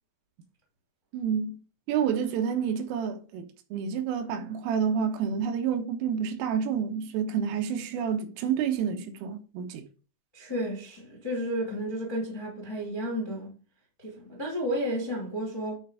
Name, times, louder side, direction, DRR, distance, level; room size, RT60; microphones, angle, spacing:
voice 1, 1.1-1.6 1.9-9.9, right 7 dB, 85° right, 3.7 m, -29 dB
voice 2, 10.3-13.5 14.0-15.7, equal, 15° left, 0.9 m, -32 dB
9.3 x 4.6 x 4.9 m
omnidirectional pair, 5.6 m